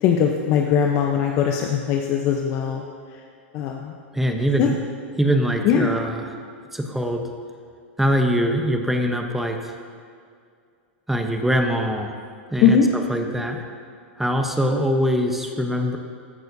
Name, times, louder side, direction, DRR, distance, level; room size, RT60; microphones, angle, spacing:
voice 1, 0.0-2.8 3.5-3.9 4.6-4.7 5.6-5.9 12.6-12.9, left 8 dB, 40° left, 1 dB, 0.8 m, -20 dB
voice 2, 4.1-4.8 5.2-6.3 6.7-7.3 8.0-9.6 11.1-12.1 12.5-13.6 14.2-16.0, equal, 5° right, 4 dB, 0.9 m, -23 dB
14.5 x 10.5 x 2.8 m, 2.3 s
hypercardioid pair, 130°, 7 cm